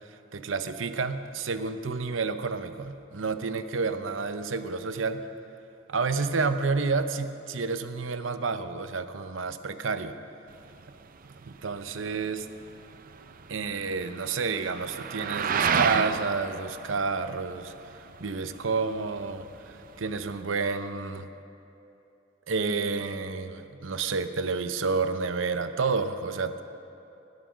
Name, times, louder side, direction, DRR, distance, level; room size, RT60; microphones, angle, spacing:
voice 1, 0.3-5.2 5.9-10.1 11.2-12.5 13.5-17.7 18.2-21.3 22.5-26.6, right 4 dB, 80° right, 10 dB, 0.8 m, -30 dB
sound 1, 10.5-20.4, right 6 dB, 45° right, 0.5 m, -33 dB
16.5 x 11.5 x 6.2 m, 2.9 s
head